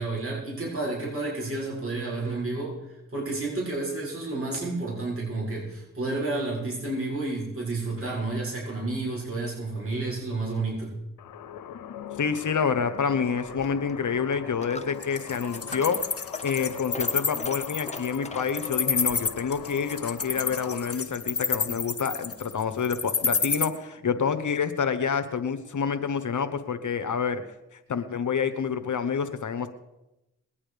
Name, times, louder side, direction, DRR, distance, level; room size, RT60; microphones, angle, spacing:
voice 1, 0.0-2.7 3.1-10.9, right 2 dB, 40° right, -4 dB, 6.9 m, -30 dB
sound 1, 11.2-20.9, left 9 dB, 90° left, 0.9 m, -41 dB
voice 2, 12.2-16.0 16.4-27.4 27.7-29.7, left 6 dB, 65° left, 9 dB, 1.1 m, -28 dB
Coin (dropping), 13.4-20.9, left 3 dB, 20° left, 1.4 m, -43 dB
Wild animals, 15.0-23.6, left 5 dB, 45° left, 1.6 m, -28 dB
21.5 x 8.7 x 5.1 m, 0.96 s
cardioid pair, 45°, 33 cm